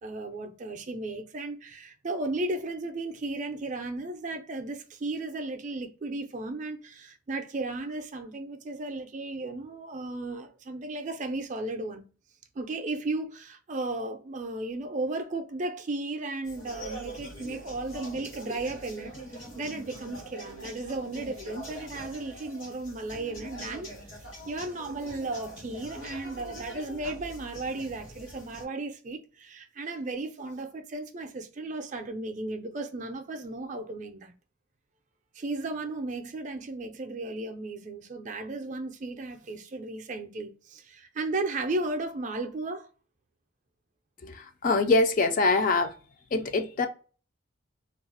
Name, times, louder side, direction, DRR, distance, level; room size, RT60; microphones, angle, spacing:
voice 1, 0.0-12.0 12.6-23.9 24.1-34.3 35.3-42.9, right 2 dB, 35° right, 0.4 m, -35 dB
sound 1, 16.4-28.7, right 1 dB, 65° left, 1.1 m, -43 dB
voice 2, 44.2-45.9 46.3-46.9, left 3 dB, 40° left, 0.3 m, -24 dB
2.3 x 2.0 x 3.7 m
head